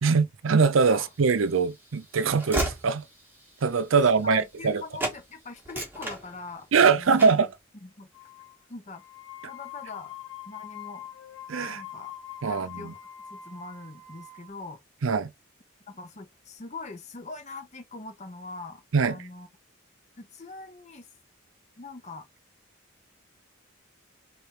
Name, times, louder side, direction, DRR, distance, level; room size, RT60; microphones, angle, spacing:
voice 1, 0.0-3.0 3.6-4.8 6.7-7.5 11.5-11.8 12.4-12.9 15.0-15.3 18.9-19.2, right 5 dB, 70° right, 0.5 m, -22 dB
Train / Slam, 1.1-4.7 5.0-5.2 5.6-6.8 7.2-7.5, right 1 dB, 10° right, 1.3 m, -34 dB
voice 2, 4.2-7.3 7.8-8.1 8.7-9.0 9.5-10.1 10.5-11.1 11.6-12.1 12.4-13.0 13.3-14.8 15.9-19.5 20.2-21.1 21.8-22.3, left 3 dB, 35° left, 0.8 m, -42 dB
sound 1, 8.1-8.6 8.9-14.5, left 10 dB, 70° left, 1.1 m, -43 dB
3.3 x 2.7 x 4.3 m
head